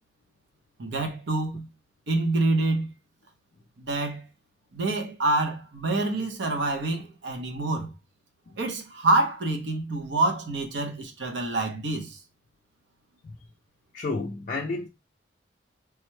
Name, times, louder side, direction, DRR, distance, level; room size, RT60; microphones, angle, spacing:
voice 1, 0.8-1.7 2.1-2.9 3.9-4.2 4.7-7.9 8.6-12.2, right 2 dB, 70° right, 0.7 m, -26 dB
voice 2, 13.9-14.9, left 3 dB, 40° left, 0.3 m, -31 dB
3.3 x 2.2 x 3.0 m
head